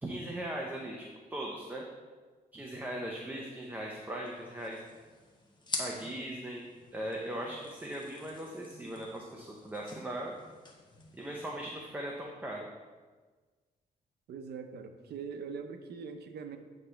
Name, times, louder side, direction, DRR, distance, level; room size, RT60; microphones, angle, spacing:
voice 1, 0.0-1.8 2.5-4.8 5.8-6.7 6.9-10.3 11.1-12.7, right 1 dB, 10° right, -1 dB, 0.7 m, -39 dB
sound 1, 4.2-11.9, left 3 dB, 30° left, 1.0 m, -46 dB
voice 2, 14.3-16.6, right 6 dB, 85° right, 7 dB, 0.7 m, -42 dB
9.1 x 3.2 x 5.7 m, 1.4 s
wide cardioid pair, 140°, 16 cm